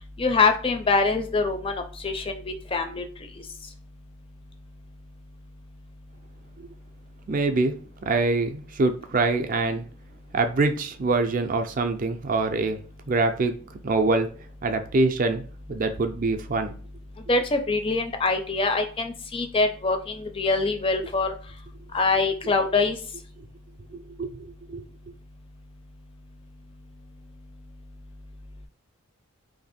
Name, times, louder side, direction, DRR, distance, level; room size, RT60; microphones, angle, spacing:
voice 1, 0.2-3.0 17.3-21.3 21.9-23.0, left 3 dB, 25° left, 0.4 m, -24 dB
voice 2, 7.3-7.7 8.1-9.8 10.3-12.8 13.1-13.6 13.8-14.3 14.6-16.8 23.9-24.8, right 3 dB, 40° right, 0.4 m, -25 dB
2.8 x 2.7 x 4.1 m
head